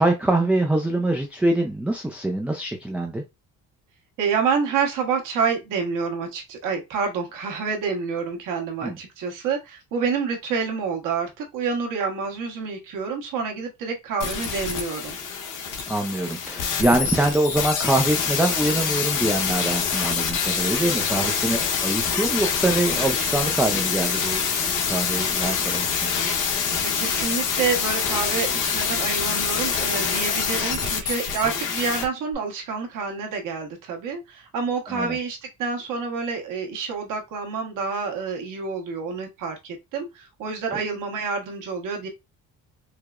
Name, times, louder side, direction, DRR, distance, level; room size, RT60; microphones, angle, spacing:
voice 1, 0.0-3.2 8.8-9.0 15.9-24.5 24.9-26.1 34.9-35.2, right 2 dB, 5° right, 0.4 m, -24 dB
voice 2, 4.2-15.2 26.8-42.1, right 5 dB, 75° right, 1.3 m, -28 dB
sound 1, 14.2-32.0 32.3-32.4, left 6 dB, 75° left, 1.1 m, -25 dB
4.7 x 2.0 x 2.4 m
cardioid pair, 125°, 32 cm